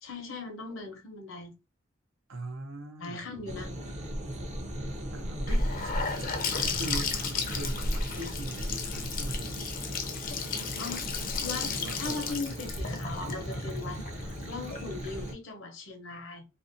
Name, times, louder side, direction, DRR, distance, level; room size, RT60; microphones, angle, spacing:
voice 1, 0.0-1.5 3.0-3.7 10.8-14.0 14.4-16.4, left 3 dB, 75° left, 0.7 m, -39 dB
voice 2, 2.3-3.3 5.1-6.0 6.7-7.2 7.4-9.8 11.7-12.7, right 2 dB, 80° right, 0.6 m, -41 dB
sound 1, 3.5-15.3, equal, 35° right, 0.5 m, -36 dB
Gurgling / Sink (filling or washing) / Bathtub (filling or washing), 5.5-15.3, left 5 dB, 45° left, 0.5 m, -35 dB
2.5 x 2.0 x 2.5 m
head